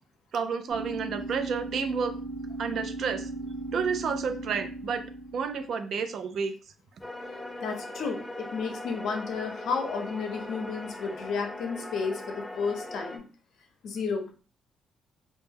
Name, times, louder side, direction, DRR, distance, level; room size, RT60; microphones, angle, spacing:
voice 1, 0.3-2.2 2.6-3.3 3.7-5.1 5.3-6.5, right 6 dB, 65° right, 8 dB, 0.4 m, -30 dB
sound 1, 0.7-5.7, right 2 dB, 85° right, 0.8 m, -37 dB
sound 2, 7.0-13.2, left 1 dB, 10° left, 0.4 m, -40 dB
voice 2, 7.6-13.3 13.8-14.3, left 5 dB, 70° left, 4 dB, 0.6 m, -32 dB
2.1 x 2.1 x 3.3 m, 0.37 s
cardioid pair, 90°, 0 cm